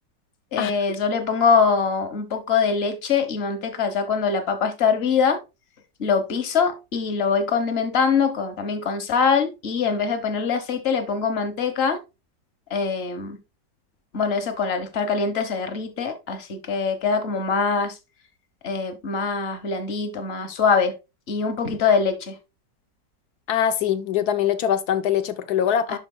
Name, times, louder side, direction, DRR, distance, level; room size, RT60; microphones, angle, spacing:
voice 1, 0.5-5.4 6.0-12.0 12.7-13.4 14.1-18.0 18.6-20.9 21.3-22.4 25.9-26.0, left 5 dB, 40° left, 1.2 m, -23 dB
voice 2, 23.5-26.0, left 9 dB, 65° left, 1.2 m, -23 dB
11.5 x 4.8 x 2.2 m
omnidirectional pair, 1.9 m